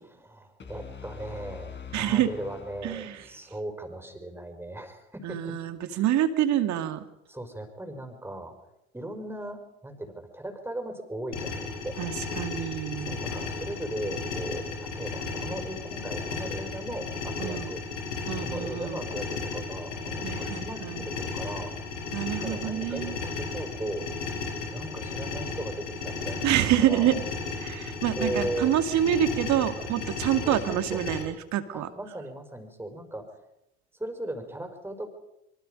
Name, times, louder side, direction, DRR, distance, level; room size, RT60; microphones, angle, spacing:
voice 1, 0.0-5.6 5.9-6.0 7.3-8.5 8.9-12.0 13.0-17.8 18.3-21.9 22.4-24.1 24.6-27.1 28.1-28.8 30.4-31.0 31.7-33.4 34.0-35.1, right 1 dB, 5° right, 6 dB, 5.3 m, -37 dB
sound 1, 0.6-3.5, left 6 dB, 30° left, 4.0 m, -43 dB
voice 2, 1.9-2.3 2.8-3.2 5.2-7.0 12.0-13.2 17.4-17.7 18.3-19.0 20.2-21.0 22.1-23.2 26.4-27.1 27.6-31.9, right 11 dB, 50° right, 9 dB, 2.3 m, -27 dB
sound 2, 11.3-31.2, left 4 dB, 85° left, 4.9 m, -34 dB
26.0 x 23.5 x 5.3 m, 0.88 s
hypercardioid pair, 70°, 36 cm